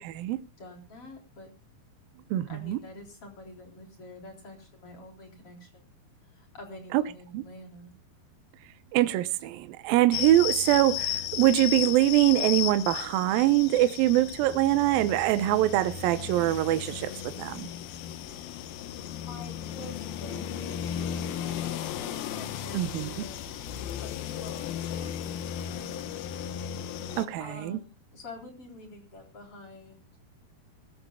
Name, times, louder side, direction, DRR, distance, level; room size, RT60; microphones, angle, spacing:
voice 1, 0.0-0.4 2.3-2.8 6.9-7.0 7.3-7.4 8.9-17.7 22.7-23.1 27.1-27.8, right 14 dB, 75° right, 2.5 m, -24 dB
voice 2, 0.6-1.5 2.5-5.8 6.3-7.9 19.1-26.1 27.4-30.1, left 2 dB, 35° left, 4.6 m, -47 dB
sound 1, 10.1-27.3, left 10 dB, 75° left, 2.8 m, -35 dB
23.5 x 13.0 x 2.3 m
omnidirectional pair, 4.4 m